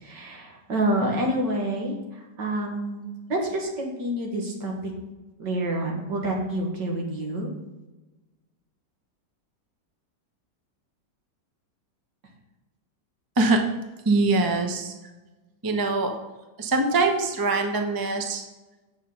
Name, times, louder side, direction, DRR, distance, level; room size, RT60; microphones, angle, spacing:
voice 1, 0.0-1.9 2.4-4.9 5.4-7.5, right 1 dB, 70° right, 0 dB, 2.3 m, -28 dB
voice 2, 14.0-14.9 15.6-16.1 16.6-18.4, right 3 dB, 20° right, 4 dB, 0.6 m, -23 dB
8.5 x 6.5 x 5.6 m, 1.1 s
omnidirectional pair, 2.0 m